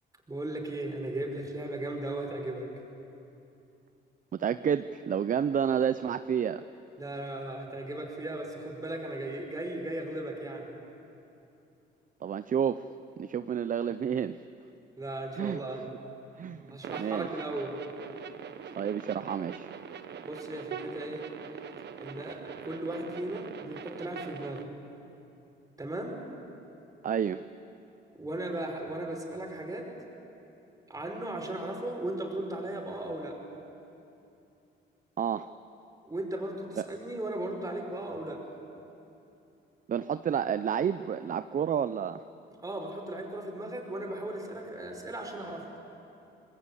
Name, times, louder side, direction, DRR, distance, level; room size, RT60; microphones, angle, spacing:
voice 1, 0.3-2.7 7.0-10.7 15.0-15.9 16.7-17.8 20.2-21.2 22.0-24.7 25.8-26.2 28.1-29.9 30.9-33.4 36.1-38.4 42.6-45.7, right 1 dB, 15° right, 2 dB, 5.2 m, -36 dB
voice 2, 4.4-6.6 12.2-12.8 13.2-14.3 15.4-15.6 16.4-17.3 18.8-19.7 27.0-27.4 35.2-35.5 36.8-36.9 39.9-42.2, right 8 dB, 40° right, 12 dB, 0.6 m, -30 dB
sound 1, 16.8-24.6, right 7 dB, 60° right, 1.2 m, -43 dB
26.0 x 20.5 x 8.5 m, 2.8 s
cardioid pair, 90°, 20 cm